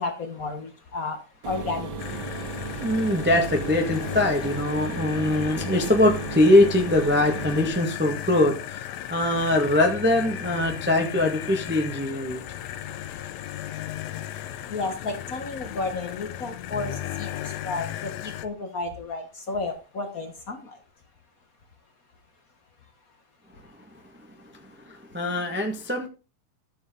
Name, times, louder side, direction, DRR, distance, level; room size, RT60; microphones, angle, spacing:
voice 1, 0.0-2.1 5.8-5.9 9.0-9.2 10.6-10.8 12.2-20.8, left 3 dB, 55° left, 5 dB, 0.9 m, -34 dB
sound 1, 1.4-7.7, right 3 dB, 45° right, 2.2 m, -35 dB
sound 2, 2.0-18.5, left 12 dB, 75° left, 1.7 m, -36 dB
voice 2, 2.8-12.4 24.6-26.1, left 1 dB, 10° right, 1 dB, 0.7 m, -22 dB
12.5 x 7.3 x 3.8 m, 0.32 s
omnidirectional pair, 3.5 m